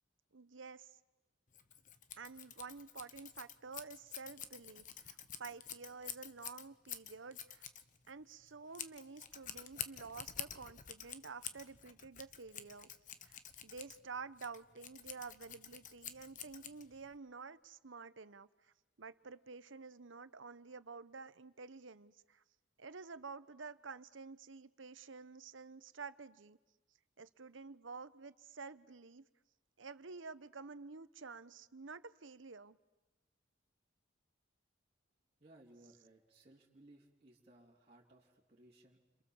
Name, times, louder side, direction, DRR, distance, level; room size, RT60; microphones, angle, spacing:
voice 1, 0.3-0.9 2.2-7.6 8.1-12.9 13.2-22.4 22.8-26.6 27.2-29.3 29.8-32.8, right 4 dB, 75° right, 14 dB, 1.0 m, -50 dB
Scissors, 1.5-17.2, left 9 dB, 45° left, 1.1 m, -49 dB
voice 2, 35.4-39.2, right 1 dB, 30° right, -7 dB, 3.3 m, -63 dB
30.0 x 27.0 x 7.3 m, 1.0 s
head